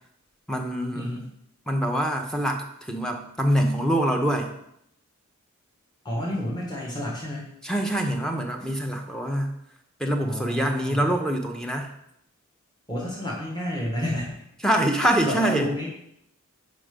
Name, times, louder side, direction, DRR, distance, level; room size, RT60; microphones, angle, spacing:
voice 1, 0.5-1.2 1.7-4.5 7.6-9.5 10.0-11.9 14.6-15.7, right 1 dB, 5° left, 1 dB, 0.7 m, -25 dB
voice 2, 6.0-7.5 10.2-11.1 12.9-14.3 15.3-15.9, left 1 dB, 20° left, -4 dB, 1.4 m, -30 dB
5.0 x 4.7 x 5.1 m, 0.75 s
head